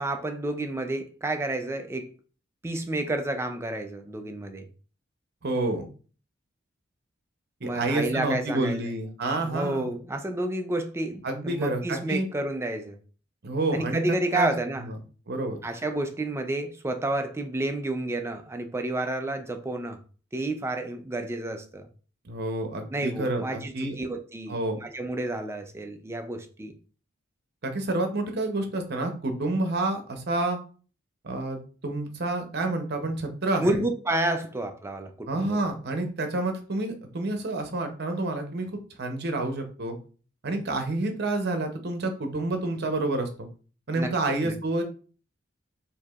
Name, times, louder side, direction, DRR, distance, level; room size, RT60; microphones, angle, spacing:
voice 1, 0.0-2.1 2.6-4.7 7.6-8.8 9.4-13.0 13.7-14.8 15.6-20.0 20.3-21.9 22.9-26.7 33.6-35.6 44.0-44.1 44.4-44.6, right 1 dB, 15° right, 0.4 m, -30 dB
voice 2, 5.4-5.9 7.6-9.9 11.2-12.3 13.4-14.0 14.3-14.5 14.8-15.0 15.3-15.6 22.2-24.0 24.5-24.8 27.6-30.6 31.2-31.6 31.8-33.8 35.3-38.7 39.0-40.0 40.4-43.5 43.9-44.8, right 2 dB, 55° right, 0.7 m, -29 dB
4.6 x 2.7 x 2.4 m
head